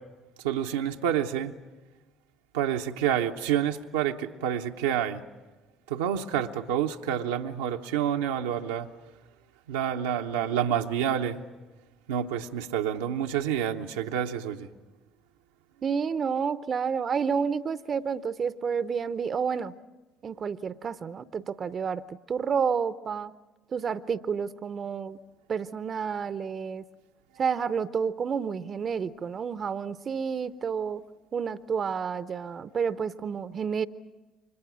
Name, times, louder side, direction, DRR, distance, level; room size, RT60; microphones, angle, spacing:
voice 1, 0.4-1.5 2.5-5.2 5.9-8.9 9.7-11.4 12.1-14.7, right 9 dB, 80° right, 3 dB, 0.8 m, -28 dB
voice 2, 15.8-19.7 20.2-23.3 23.7-25.2 25.5-26.8 27.4-31.0 31.3-33.9, right 6 dB, 45° right, 14 dB, 0.7 m, -30 dB
29.5 x 25.0 x 6.2 m, 1.2 s
hypercardioid pair, 55°, 0 cm